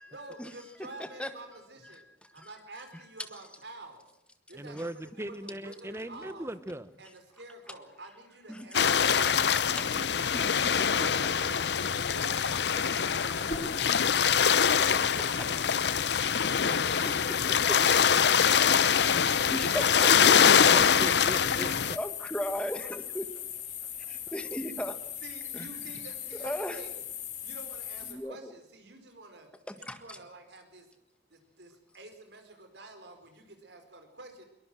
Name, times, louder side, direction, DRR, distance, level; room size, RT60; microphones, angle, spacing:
voice 1, 0.1-4.0 4.5-4.9 5.2-6.5 7.0-9.8 10.1-11.7 12.0-14.4 14.7-16.2 16.7-18.1 18.4-19.4 21.6-21.9 23.8-24.1 24.7-24.9 25.2-27.0 27.4-29.5 29.8-30.9 31.3-34.4, right 2 dB, 70° right, 6 dB, 4.8 m, -49 dB
voice 2, 1.9-2.5 4.7-4.8 8.5-8.7 9.8-10.0 10.3-10.4 13.8-13.9 19.5-20.4 21.5-23.2 24.1-25.0 25.5-25.7 26.3-26.8 28.1-28.5 29.7-30.2, equal, 5° left, 9 dB, 1.7 m, -37 dB
voice 3, 4.5-6.9 20.4-21.7, right 1 dB, 15° right, 14 dB, 1.0 m, -39 dB
sound 1, 8.7-22.0, left 7 dB, 70° left, 0.7 m, -24 dB
sound 2, 11.7-28.1, left 8 dB, 40° left, 3.6 m, -41 dB
22.5 x 21.0 x 6.2 m, 0.84 s
head